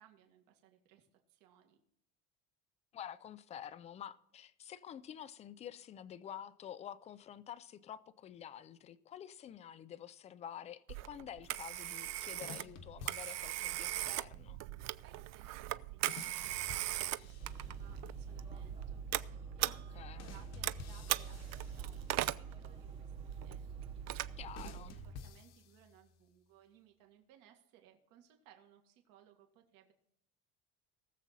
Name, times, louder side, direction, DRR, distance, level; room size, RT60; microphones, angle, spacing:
voice 1, 0.0-1.8 15.0-23.8 24.5-29.9, right 10 dB, 65° right, 2.0 m, -63 dB
voice 2, 2.9-14.6 19.6-20.4 24.4-24.9, left 9 dB, 20° left, 0.3 m, -49 dB
Telephone, 10.9-25.1, right 16 dB, 45° right, 0.5 m, -40 dB
sound 1, 12.4-13.8 16.1-18.0 20.2-22.3 24.6-26.2, left 6 dB, 45° left, 1.0 m, -52 dB
sound 2, 17.4-24.8, right 5 dB, 15° right, 0.9 m, -47 dB
19.0 x 7.3 x 4.1 m
cardioid pair, 165°, 36 cm